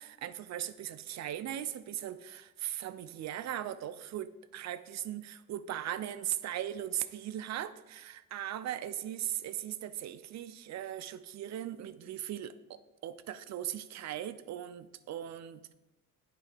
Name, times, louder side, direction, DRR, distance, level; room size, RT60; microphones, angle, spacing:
voice 1, 0.0-15.7, right 11 dB, 65° right, 0.5 m, -39 dB
9.1 x 3.3 x 5.0 m
cardioid pair, 90°, 30 cm